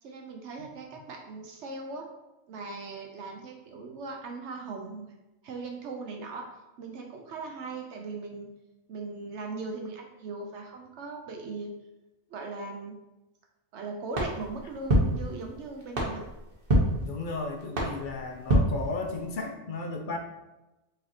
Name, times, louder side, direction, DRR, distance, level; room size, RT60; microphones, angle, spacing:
voice 1, 0.0-2.0 2.5-5.1 5.4-6.4 6.8-8.5 8.9-11.7 12.3-12.9 13.7-16.2, right 3 dB, 70° right, 1 dB, 0.9 m, -39 dB
sound 1, 14.1-19.5, equal, 50° right, 1.1 m, -29 dB
voice 2, 17.0-20.2, left 3 dB, 60° left, 2 dB, 0.5 m, -34 dB
5.0 x 3.2 x 2.8 m, 1.0 s
omnidirectional pair, 1.3 m